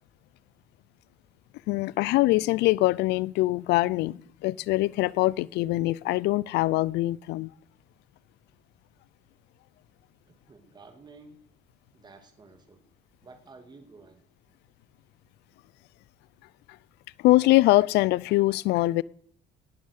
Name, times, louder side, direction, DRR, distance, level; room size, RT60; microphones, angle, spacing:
voice 1, 1.7-7.5 17.2-19.0, left 18 dB, 85° left, 0.5 m, -23 dB
voice 2, 10.3-11.4 11.9-12.8 13.2-14.2, right 3 dB, 25° right, 2.1 m, -51 dB
19.0 x 7.5 x 6.4 m
cardioid pair, 110°, 17 cm